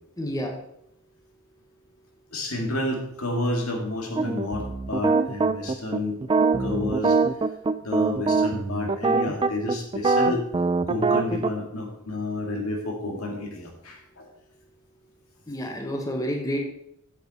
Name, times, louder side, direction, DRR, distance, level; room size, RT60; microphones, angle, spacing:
voice 1, 0.2-0.6 15.5-16.6, equal, 15° left, 2 dB, 0.9 m, -29 dB
voice 2, 2.3-6.2 6.6-7.2 7.8-10.4 10.9-14.3, left 2 dB, 75° left, 2 dB, 2.0 m, -30 dB
sound 1, 4.2-11.5, right 4 dB, 25° right, 0.4 m, -23 dB
8.7 x 7.2 x 4.1 m, 0.77 s
head